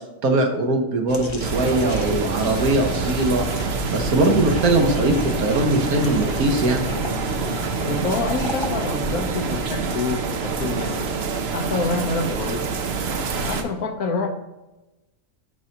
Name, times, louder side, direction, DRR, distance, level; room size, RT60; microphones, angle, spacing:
voice 1, 0.2-3.5 3.9-6.9, right 2 dB, 75° right, 3 dB, 1.6 m, -21 dB
sound 1, 1.1-8.7, left 2 dB, 35° left, 0.4 m, -33 dB
sound 2, 1.4-13.6, right 4 dB, 55° right, 0.8 m, -26 dB
voice 2, 7.8-11.1 11.5-12.7 13.3-14.3, left 4 dB, 70° left, 5 dB, 1.3 m, -27 dB
12.0 x 4.7 x 2.9 m, 1.0 s
omnidirectional pair, 1.6 m